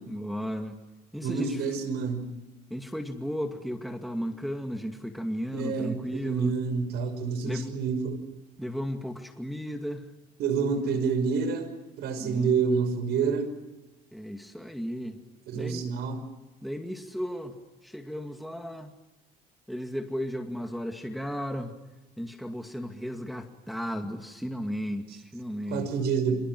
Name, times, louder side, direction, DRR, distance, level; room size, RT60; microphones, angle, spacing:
voice 1, 0.1-0.8 1.1-1.6 2.7-6.5 7.4-7.7 8.6-10.0 10.8-11.0 12.2-12.6 14.1-15.2 15.5-15.9 16.6-17.5 17.8-18.9 19.7-21.7 22.2-25.9, equal, ahead, 4 dB, 2.4 m, -35 dB
voice 2, 1.2-2.2 5.5-8.2 10.4-11.7 12.0-13.5 15.5-16.2 25.7-26.4, right 5 dB, 75° right, 11 dB, 5.6 m, -28 dB
28.5 x 26.5 x 6.2 m, 1.1 s
cardioid pair, 110°, 17 cm